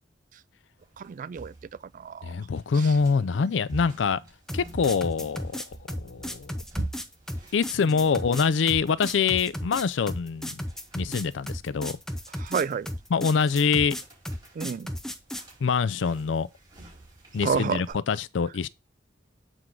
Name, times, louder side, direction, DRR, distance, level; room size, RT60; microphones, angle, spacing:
sound 1, 0.8-17.9, right 2 dB, 25° right, 4.5 m, -46 dB
voice 1, 1.0-1.5 1.9-2.3 12.4-12.9 14.6-14.9 17.4-17.8, right 6 dB, 45° right, 0.3 m, -29 dB
voice 2, 2.2-4.2 4.5-6.5 7.5-10.6 10.9-12.0 13.1-14.0 15.6-16.5 17.3-18.7, left 5 dB, 85° left, 0.4 m, -25 dB
sound 2, 4.5-15.5, equal, 5° left, 0.6 m, -35 dB
7.8 x 4.6 x 3.8 m
head